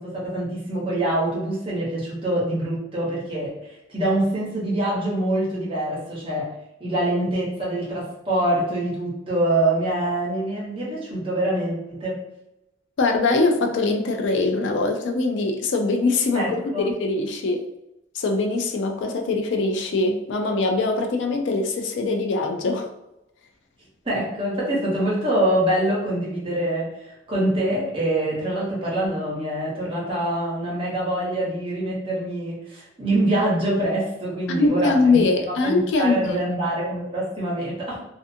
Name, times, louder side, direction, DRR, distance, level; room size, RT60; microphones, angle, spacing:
voice 1, 0.0-6.5 6.8-12.2 16.3-16.9 24.0-38.0, right 1 dB, 25° right, -6 dB, 0.9 m, -25 dB
voice 2, 13.0-17.6 18.1-22.9 34.5-36.4, left 3 dB, 70° left, 4 dB, 0.4 m, -22 dB
2.5 x 2.4 x 2.6 m, 0.88 s
head